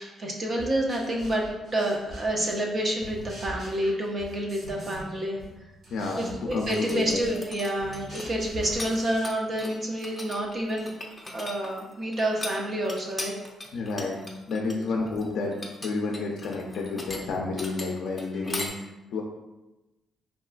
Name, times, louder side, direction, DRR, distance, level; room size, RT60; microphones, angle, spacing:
voice 1, 0.0-1.4 1.7-5.4 6.2-10.9 11.3-13.3 14.6-14.8, right 1 dB, 40° right, 0 dB, 0.5 m, -28 dB
sound 1, 0.6-2.7 3.0-5.1 5.4-9.7, equal, 55° right, 1.4 m, -43 dB
voice 2, 5.9-7.2 13.7-14.2 14.5-19.2, left 3 dB, 75° left, 0 dB, 0.4 m, -30 dB
sound 2, 6.5-8.9 9.2-18.7, left 2 dB, 15° left, 0.5 m, -38 dB
3.6 x 2.3 x 2.3 m, 1.0 s
cardioid pair, 90°, 0 cm